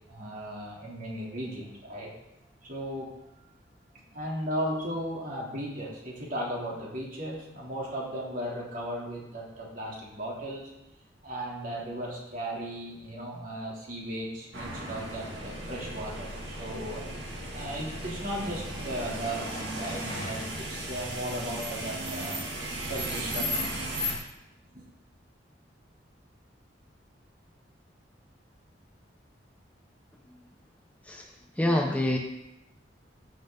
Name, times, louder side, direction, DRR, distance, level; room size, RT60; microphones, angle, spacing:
voice 1, 0.1-2.1 2.6-3.1 4.1-10.7 11.2-17.1 17.5-22.4 22.8-23.8 24.7-24.9, equal, 50° right, -4 dB, 3.2 m, -36 dB
sound 1, 14.5-24.2, equal, 65° right, 2.5 m, -35 dB
voice 2, 31.6-32.2, left 1 dB, 10° left, 1 dB, 0.9 m, -25 dB
15.0 x 7.4 x 3.9 m, 0.88 s
head